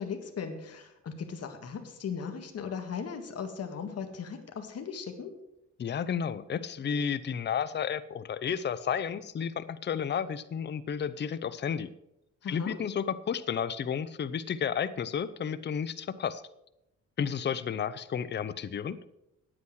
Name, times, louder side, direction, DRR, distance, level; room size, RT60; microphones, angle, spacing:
voice 1, 0.0-5.3 12.4-12.8, left 6 dB, 55° left, 6 dB, 1.8 m, -37 dB
voice 2, 5.8-11.9 12.5-16.4 17.2-19.0, left 7 dB, 35° left, 14 dB, 0.6 m, -32 dB
9.3 x 8.7 x 6.2 m, 0.84 s
cardioid pair, 95°, 30 cm